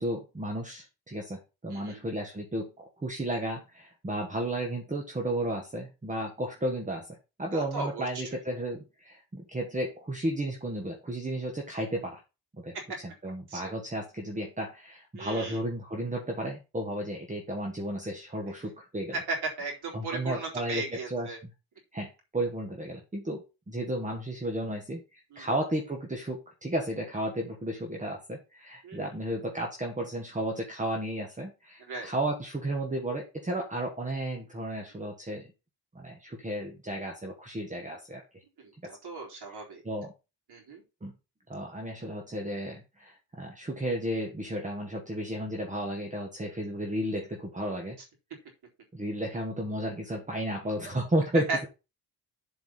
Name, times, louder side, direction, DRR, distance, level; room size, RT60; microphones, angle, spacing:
voice 1, 0.0-2.7 3.0-12.2 12.5-19.2 19.9-21.5 21.9-23.4 23.7-35.5 35.9-38.2 39.8-40.1 41.0-41.1 41.5-48.0 48.9-51.7, right 1 dB, 20° right, 1 dB, 1.5 m, -33 dB
voice 2, 7.5-8.1 13.5-13.7 15.1-15.6 19.1-21.4 25.3-25.5 28.8-29.0 31.9-32.1 38.6-39.8 40.5-40.8 51.5-51.6, right 3 dB, 80° right, -1 dB, 4.1 m, -36 dB
7.7 x 4.7 x 5.6 m, 0.28 s
wide cardioid pair, 145°, 39 cm